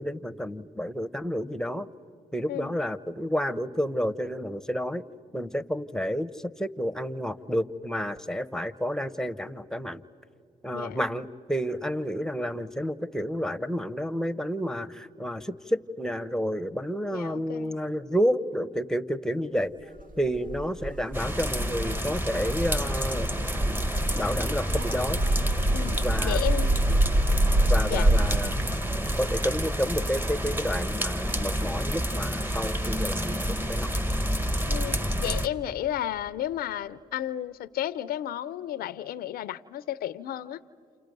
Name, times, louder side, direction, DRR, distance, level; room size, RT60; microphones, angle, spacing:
voice 1, 0.0-1.9 2.3-5.0 5.3-6.3 6.6-10.0 10.6-19.7 20.2-23.3 23.6-23.8 24.1-25.2 26.0-26.4 26.9-27.0 27.6-33.9, equal, 5° left, 15 dB, 0.9 m, -30 dB
voice 2, 10.7-11.0 17.1-17.7 25.7-26.8 27.9-28.1 34.7-40.6, left 12 dB, 85° left, 17 dB, 0.5 m, -33 dB
sound 1, 20.0-28.4, right 1 dB, 60° right, 2.0 m, -26 dB
sound 2, 21.1-35.5, equal, 15° right, 1.3 m, -29 dB
29.0 x 29.0 x 5.4 m, 2.4 s
supercardioid pair, 60°, 15 cm